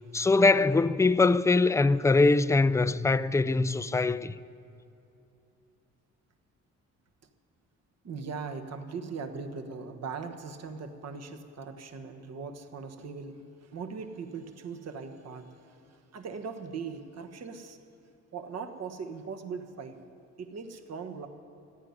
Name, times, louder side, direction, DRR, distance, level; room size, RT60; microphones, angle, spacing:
voice 1, 0.1-4.3, left 3 dB, 10° left, 0.4 m, -23 dB
voice 2, 8.0-17.8 18.3-20.0 20.4-21.3, right 5 dB, 55° right, 1.4 m, -40 dB
15.0 x 9.7 x 9.6 m
cardioid pair, 90°, 30 cm